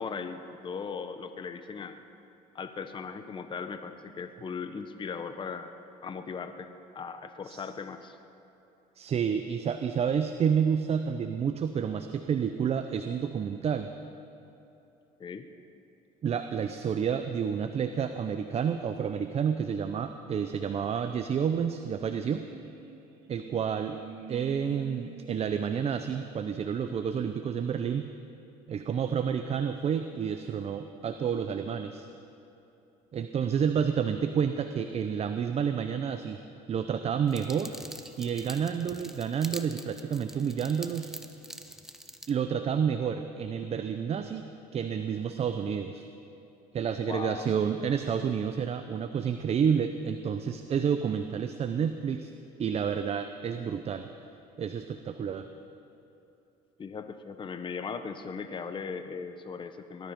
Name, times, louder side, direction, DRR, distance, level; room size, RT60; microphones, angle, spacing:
voice 1, 0.0-2.0 2.5-5.7 6.0-6.7 6.9-8.2 15.2-15.4 47.1-47.5 56.8-60.1, left 5 dB, 30° left, 9 dB, 0.9 m, -38 dB
voice 2, 9.0-13.9 16.2-22.5 23.3-24.0 24.3-28.0 28.7-32.1 33.1-36.4 36.7-37.8 38.2-41.1 42.3-44.4 44.7-46.1 46.7-52.3 52.6-54.1 54.6-55.5, right 7 dB, 40° right, 8 dB, 0.7 m, -29 dB
sound 1, 22.4-27.2, right 6 dB, 75° right, 1.6 m, -48 dB
sound 2, 37.3-42.3, equal, 5° right, 0.9 m, -45 dB
19.0 x 12.5 x 5.3 m, 2.9 s
supercardioid pair, 90°, 16 cm